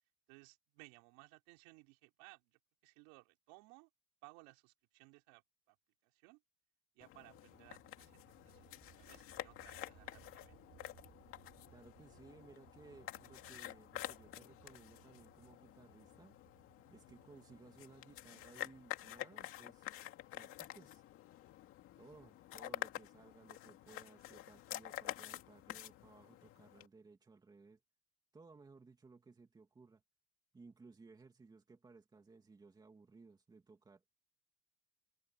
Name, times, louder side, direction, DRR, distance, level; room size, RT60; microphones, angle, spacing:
voice 1, 0.3-3.9 4.2-5.8 6.0-6.4 7.0-10.6 17.4-17.6, right 28 dB, 65° right, 5.3 m, -61 dB
sound 1, 7.0-26.9, left 13 dB, 40° left, 2.2 m, -49 dB
sound 2, 7.3-19.7, right 13 dB, 35° right, 6.6 m, -67 dB
voice 2, 11.7-16.4 16.9-19.9 20.3-21.0 22.0-27.8 28.3-30.0 30.5-34.1, right 4 dB, 10° right, 2.6 m, -60 dB
open air
cardioid pair, 165°, 34 cm